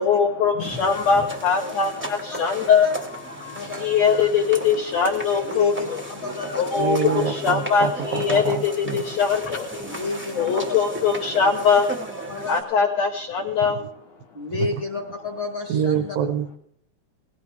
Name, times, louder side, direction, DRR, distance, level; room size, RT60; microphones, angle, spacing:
voice 1, 0.0-2.9 3.4-6.0 6.6-10.0 10.3-11.9 12.5-13.8, left 6 dB, 75° left, 3 dB, 1.6 m, -22 dB
sound 1, 0.6-12.6, right 1 dB, 20° right, 0.3 m, -35 dB
voice 2, 3.5-4.1 5.4-6.8 9.8-10.6 12.3-12.6 14.3-16.2, left 3 dB, 50° left, 3 dB, 1.4 m, -31 dB
voice 3, 6.7-9.0 13.6-13.7 14.5-14.7 15.7-16.6, right 8 dB, 75° right, 9 dB, 2.4 m, -26 dB
18.0 x 15.5 x 3.5 m, 0.67 s
omnidirectional pair, 4.3 m